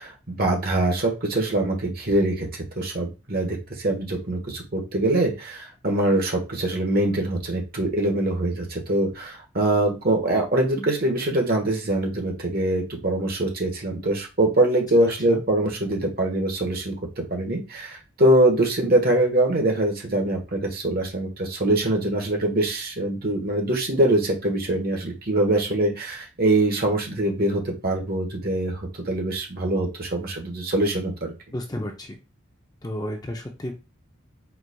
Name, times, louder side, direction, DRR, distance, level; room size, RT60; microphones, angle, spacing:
voice 1, 0.0-31.3, right 1 dB, 45° right, 2 dB, 1.1 m, -23 dB
voice 2, 15.0-15.4 31.5-32.2 32.8-33.7, left 1 dB, 20° left, 3 dB, 0.5 m, -32 dB
4.5 x 4.0 x 2.2 m, 0.28 s
head